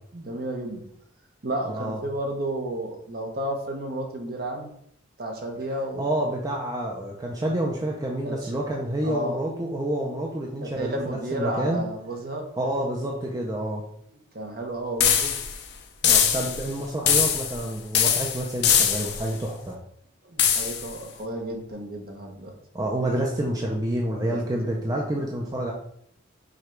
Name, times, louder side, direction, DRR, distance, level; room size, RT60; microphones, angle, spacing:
voice 1, 0.1-0.8 1.4-4.7 5.2-6.1 8.2-8.5 9.0-9.4 10.6-12.5 14.3-15.3 20.2-22.5 24.2-24.4 24.7-25.0, right 1 dB, 45° right, 2 dB, 0.7 m, -32 dB
voice 2, 1.7-2.0 6.0-11.8 12.6-13.8 16.0-19.8 22.7-25.7, right 1 dB, 20° right, -1 dB, 0.4 m, -28 dB
sound 1, 15.0-15.6 16.0-16.7 17.1-17.6 17.9-19.3 20.4-20.9, left 8 dB, 55° left, 0.5 m, -22 dB
4.9 x 2.3 x 4.4 m, 0.70 s
head